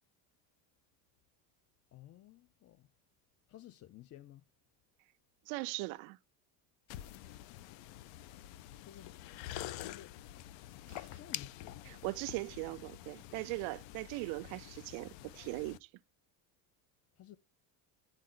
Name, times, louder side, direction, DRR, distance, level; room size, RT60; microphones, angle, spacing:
voice 1, 1.9-2.9 3.5-4.4 8.8-9.1 9.8-10.1 11.0-11.8 17.2-17.4, left 12 dB, 35° left, 0.4 m, -54 dB
voice 2, 5.5-6.2 10.9-11.1 11.9-15.8, right 22 dB, 85° right, 0.6 m, -40 dB
sound 1, 6.9-15.8, left 13 dB, 75° left, 0.7 m, -47 dB
10.5 x 4.2 x 3.7 m
cardioid pair, 135°, 46 cm